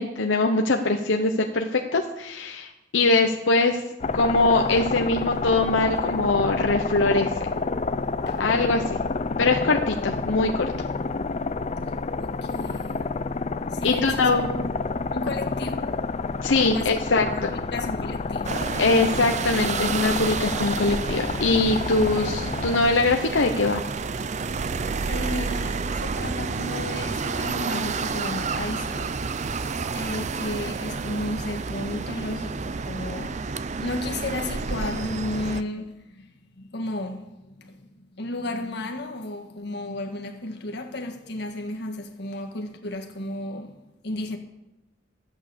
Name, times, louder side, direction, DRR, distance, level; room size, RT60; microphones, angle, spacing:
voice 1, 0.0-3.8 4.1-7.3 8.4-8.9 9.4-10.7 13.8-14.5 16.4-17.3 18.8-23.8, left 3 dB, 85° left, 0.9 m, -22 dB
sound 1, 4.0-22.8, left 4 dB, 35° left, 0.5 m, -29 dB
voice 2, 12.2-13.1 13.7-14.7 15.1-16.0 16.5-18.7 25.1-29.2 29.9-43.8 44.0-44.4, left 1 dB, 60° left, 1.6 m, -33 dB
sound 2, 18.4-35.6, right 4 dB, 40° right, 0.5 m, -30 dB
13.5 x 8.7 x 6.9 m
head